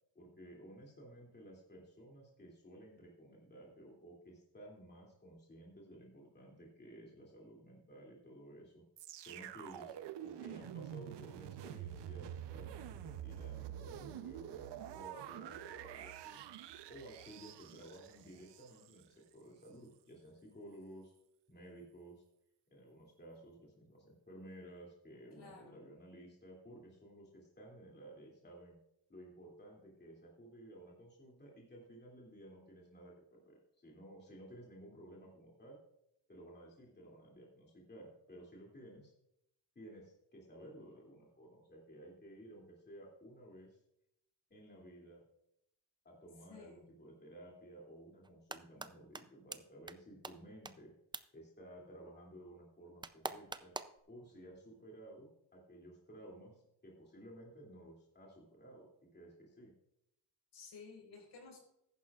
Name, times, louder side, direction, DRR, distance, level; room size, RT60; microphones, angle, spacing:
voice 1, 0.1-8.8 9.3-9.9 10.2-16.4 16.9-21.1 21.5-22.2 22.7-28.8 29.1-35.8 36.3-39.1 39.7-43.8 44.5-45.2 46.0-50.9 51.3-53.7 54.1-58.9 59.1-59.7, right 1 dB, 25° left, -2 dB, 2.7 m, -55 dB
sound 1, 9.0-19.0 19.6-19.7, right 11 dB, 70° right, 0.7 m, -47 dB
voice 2, 25.4-25.8 46.5-46.8 60.5-61.6, left 4 dB, 65° left, 0 dB, 4.7 m, -54 dB
sound 2, 48.2-48.9 49.1-49.2 49.5-49.6 49.9-50.0 50.2-50.3 50.7-50.8 51.1-51.2 53.0-54.0, right 3 dB, 10° right, 0.4 m, -42 dB
14.5 x 11.0 x 2.4 m, 0.80 s
cardioid pair, 115°, 44 cm